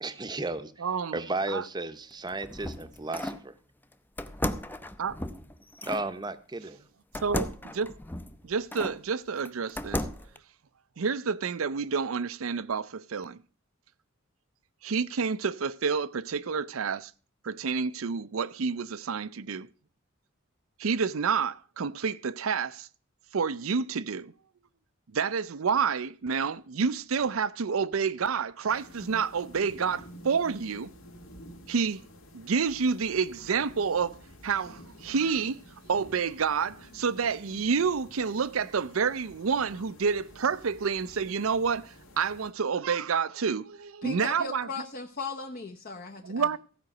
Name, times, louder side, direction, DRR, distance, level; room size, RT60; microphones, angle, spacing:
voice 1, 0.0-0.7 1.1-3.5 5.8-6.8, right 2 dB, 20° right, 0.7 m, -34 dB
voice 2, 0.8-1.2 1.5-1.6 5.0-5.1 7.2-7.9 8.4-10.0 11.0-13.4 14.8-17.1 17.4-19.7 20.8-22.9 23.3-24.3 25.1-30.9 31.7-32.0 32.3-34.2 34.4-44.7 46.2-46.6, right 5 dB, 90° right, 0.6 m, -29 dB
sound 1, 2.1-3.5 4.2-6.1 7.1-9.0 9.4-10.4, left 1 dB, 10° left, 0.5 m, -35 dB
sound 2, 28.7-42.5, equal, 75° left, 2.1 m, -51 dB
voice 3, 44.0-46.6, left 4 dB, 45° left, 0.9 m, -38 dB
15.0 x 5.1 x 7.7 m
head